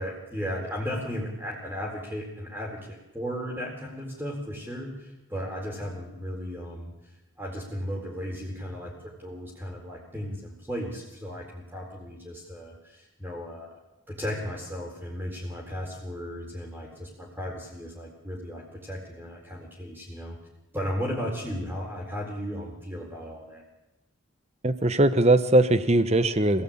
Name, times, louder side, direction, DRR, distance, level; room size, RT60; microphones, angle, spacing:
voice 1, 0.0-13.7 14.1-20.4 20.7-23.6, equal, 10° right, -1 dB, 4.2 m, -35 dB
voice 2, 24.6-26.6, right 2 dB, 30° right, 12 dB, 1.1 m, -20 dB
26.5 x 17.0 x 8.8 m, 1.0 s
head